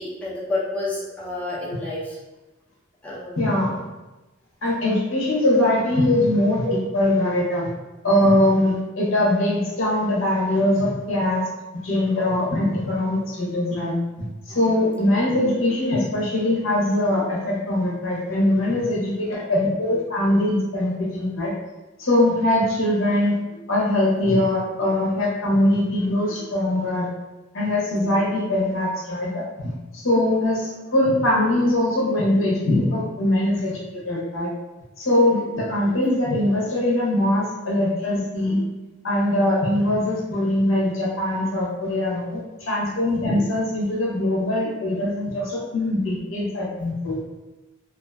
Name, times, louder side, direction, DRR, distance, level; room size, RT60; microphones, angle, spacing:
voice 1, 0.0-2.2 3.0-3.7 15.0-15.1, left 2 dB, 5° left, -7 dB, 0.5 m, -30 dB
voice 2, 3.4-3.7 4.6-7.7 8.0-11.4 11.7-21.5 22.0-27.1 27.5-34.5 35.0-38.6 39.0-47.2, left 1 dB, 80° left, -4 dB, 0.8 m, -22 dB
2.5 x 2.5 x 2.2 m, 1.1 s
head